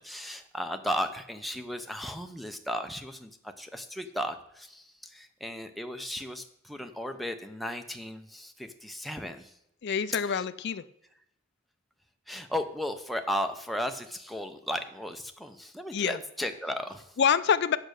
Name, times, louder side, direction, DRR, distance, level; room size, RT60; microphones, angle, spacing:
voice 1, 0.0-3.3 3.6-9.5 10.3-10.4 12.3-17.2, equal, ahead, 5 dB, 0.6 m, -35 dB
voice 2, 9.8-10.8 15.9-16.2 17.2-17.8, left 7 dB, 50° left, 13 dB, 0.4 m, -26 dB
8.6 x 6.5 x 6.4 m, 0.79 s
head